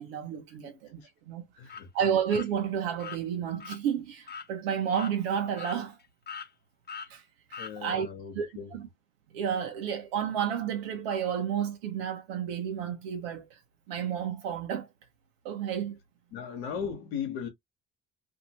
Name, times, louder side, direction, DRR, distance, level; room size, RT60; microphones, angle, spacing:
voice 1, 0.0-1.5 1.9-6.0 7.1-7.2 7.5-8.1 8.3-8.9 9.3-13.5 13.9-14.9 15.4-16.0, right 8 dB, 85° right, 0.8 m, -31 dB
voice 2, 0.6-1.1 1.6-2.1 7.6-8.8 16.3-17.5, left 7 dB, 85° left, 1.0 m, -38 dB
sound 1, 1.7-1.8 2.3-2.5 3.0-3.2 3.6-3.8 4.3-4.5 4.9-5.1 5.6-6.0 6.3-6.5 6.9-7.1 7.5-7.7, left 6 dB, 35° left, 0.8 m, -41 dB
2.7 x 2.5 x 2.9 m
hypercardioid pair, 55°, 29 cm